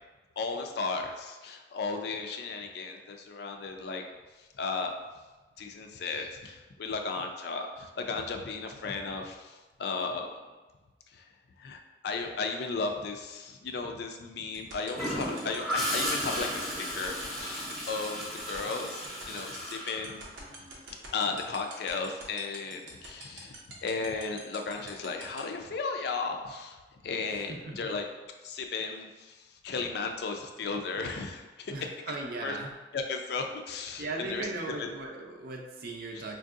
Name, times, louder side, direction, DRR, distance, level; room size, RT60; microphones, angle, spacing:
voice 1, 0.4-4.0 4.6-4.9 5.6-9.5 9.8-10.3 11.2-11.3 11.6-16.7 16.9-20.2 21.1-26.8 27.0-28.1 28.4-29.4 29.6-31.7 32.4-32.5 32.9-34.5 34.8-34.9, left 4 dB, 60° left, 4 dB, 0.4 m, -35 dB
sound 1, 14.5-25.4, right 4 dB, 90° right, 0.8 m, -45 dB
Gurgling / Toilet flush, 15.0-20.7 22.7-22.9, equal, ahead, 0.7 m, -35 dB
voice 2, 27.3-27.9 31.7-32.8 34.0-36.4, right 2 dB, 55° right, 1 dB, 0.5 m, -38 dB
4.5 x 2.6 x 2.4 m, 1.2 s
head